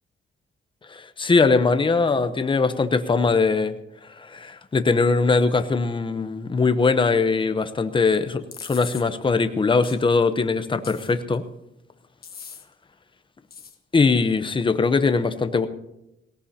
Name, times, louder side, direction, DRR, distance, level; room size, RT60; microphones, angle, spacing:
voice 1, 0.9-3.7 4.2-11.4 13.9-15.7, left 4 dB, 25° left, 10 dB, 0.8 m, -21 dB
sound 1, 8.5-9.0 9.8-10.0 10.8-11.4 12.2-12.6 13.5-13.8, left 6 dB, 45° left, 1.3 m, -40 dB
18.5 x 18.0 x 2.8 m, 0.88 s
cardioid pair, 115°, 21 cm